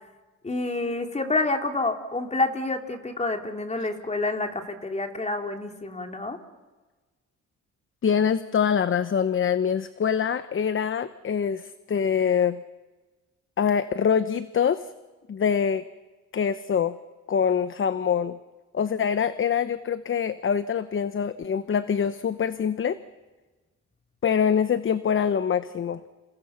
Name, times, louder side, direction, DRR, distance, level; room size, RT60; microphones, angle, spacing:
voice 1, 0.4-6.4, left 2 dB, 20° left, 4 dB, 3.3 m, -28 dB
voice 2, 8.0-12.6 13.6-14.9 15.3-15.8 16.3-17.0 17.3-18.4 18.7-23.0 24.2-26.0, left 7 dB, 40° left, 12 dB, 1.0 m, -24 dB
29.5 x 28.5 x 5.9 m, 1.3 s
cardioid pair, 90°, 30 cm